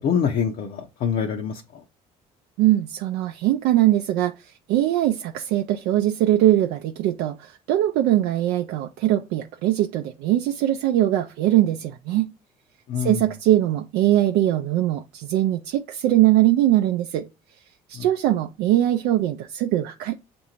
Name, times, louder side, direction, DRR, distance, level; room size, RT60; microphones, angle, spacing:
voice 1, 0.0-1.8 12.9-13.2 18.0-18.1, left 7 dB, 60° left, 0.6 m, -25 dB
voice 2, 2.6-12.3 13.0-17.3 17.9-20.1, right 13 dB, 75° right, 0.4 m, -21 dB
7.1 x 2.6 x 2.9 m
supercardioid pair, 70°, 17 cm